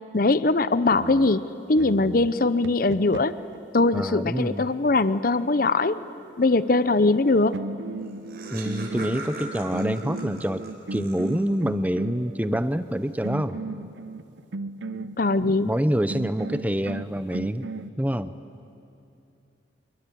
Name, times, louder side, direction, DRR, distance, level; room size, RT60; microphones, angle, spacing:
voice 1, 0.1-3.3 3.7-6.0 6.4-7.5 15.2-15.7, left 3 dB, 50° left, 14 dB, 0.7 m, -21 dB
sound 1, 0.9-3.6 7.1-7.3 7.5-12.7 13.2-15.5 16.1-17.9, right 2 dB, 70° right, 0.6 m, -36 dB
voice 2, 3.9-4.7 8.5-10.6 10.9-13.6 15.4-17.7 18.0-18.3, equal, 10° right, 13 dB, 0.7 m, -26 dB
Laughter, 7.7-7.8 8.0-11.7, right 2 dB, 50° right, 3.9 m, -40 dB
26.0 x 22.0 x 9.9 m, 2.7 s
head